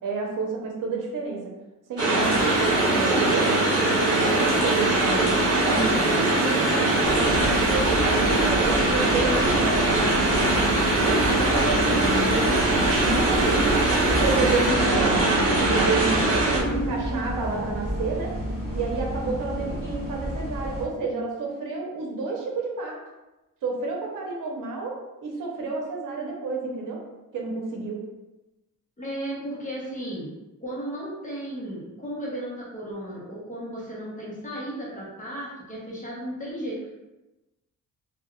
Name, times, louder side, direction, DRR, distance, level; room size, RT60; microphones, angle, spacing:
voice 1, 0.0-1.5 1.9-7.3 7.6-12.6 13.0-13.8 14.1-18.3 18.7-23.0 23.6-27.0 27.3-28.0, right 3 dB, 70° right, -1 dB, 0.8 m, -30 dB
sound 1, 2.0-16.6, right 2 dB, 50° right, 1.2 m, -22 dB
sound 2, 2.2-14.7, equal, 5° right, 1.3 m, -39 dB
voice 2, 2.3-3.1 11.8-12.6 16.5-17.8 19.5-19.8 29.0-30.3 30.6-36.9, right 1 dB, 25° left, -6 dB, 0.8 m, -34 dB
sound 3, 7.0-20.9, equal, 25° right, 1.4 m, -31 dB
3.3 x 2.3 x 2.3 m, 1.0 s
cardioid pair, 125°, 33 cm